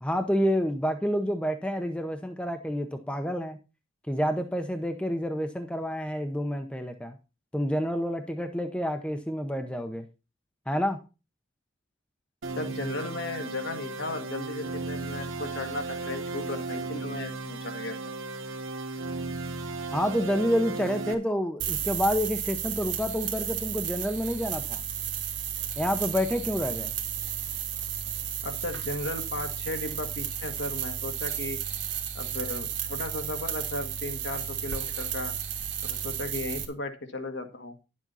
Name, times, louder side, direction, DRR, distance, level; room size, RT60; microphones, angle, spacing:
voice 1, 0.0-3.6 4.1-7.2 7.5-10.1 10.7-11.0 19.9-24.8 25.8-26.9, equal, 5° left, 6 dB, 0.8 m, -28 dB
sound 1, 12.4-21.1, right 3 dB, 85° right, 1.6 m, -35 dB
voice 2, 12.5-17.9 28.4-31.6 32.1-35.3 35.8-37.8, left 2 dB, 65° left, 6 dB, 1.6 m, -35 dB
sound 2, 21.6-36.6, right 9 dB, 60° right, 1.5 m, -33 dB
10.5 x 7.5 x 4.0 m, 0.30 s
head